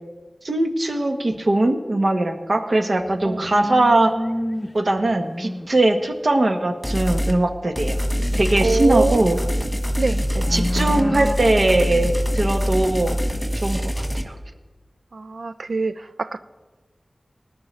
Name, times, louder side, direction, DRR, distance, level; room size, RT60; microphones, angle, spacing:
voice 1, 0.4-4.1 4.7-8.0 8.3-9.4 10.3-13.2 13.5-14.3, right 2 dB, 60° right, 5 dB, 1.3 m, -20 dB
sound 1, 3.1-4.8 5.1-5.7 8.2-9.5 9.9-11.3, equal, 25° left, 0.7 m, -30 dB
sound 2, 6.8-7.4 7.8-14.2, equal, 5° left, 1.7 m, -24 dB
voice 2, 8.6-9.2 10.0-10.2 15.1-16.4, right 3 dB, 80° right, 12 dB, 0.3 m, -24 dB
19.5 x 11.0 x 3.3 m, 1.3 s
wide cardioid pair, 55°, 0 cm